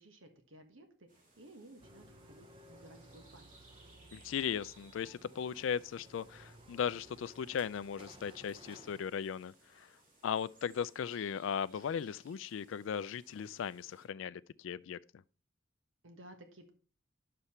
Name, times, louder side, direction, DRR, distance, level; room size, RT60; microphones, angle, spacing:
voice 1, 0.0-3.6 16.0-16.7, right 1 dB, 80° right, 1.4 m, -56 dB
sound 1, 1.1-14.1, right 2 dB, 45° right, 2.7 m, -64 dB
sound 2, 1.8-9.0, right 1 dB, 25° right, 0.7 m, -58 dB
voice 2, 4.1-9.9 10.2-15.2, left 7 dB, 70° left, 0.3 m, -37 dB
9.8 x 6.8 x 4.3 m
head